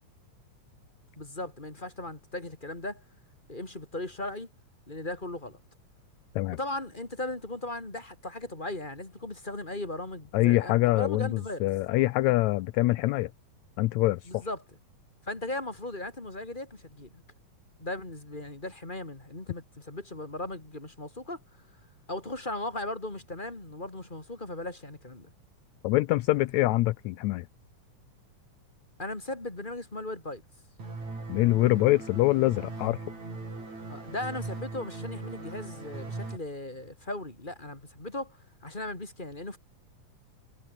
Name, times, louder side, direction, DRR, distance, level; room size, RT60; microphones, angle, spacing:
voice 1, 1.2-3.0 3.5-4.5 4.9-5.6 6.5-11.7 14.2-14.6 15.2-17.2 17.8-21.4 22.1-25.3 29.0-30.4 33.9-39.6, left 2 dB, 15° left, 3.2 m, -37 dB
voice 2, 10.3-13.3 13.8-14.5 25.8-27.5 31.3-33.0, left 18 dB, 80° left, 1.7 m, -25 dB
sound 1, 30.8-36.4, right 3 dB, 60° right, 9.3 m, -39 dB
omnidirectional pair, 3.7 m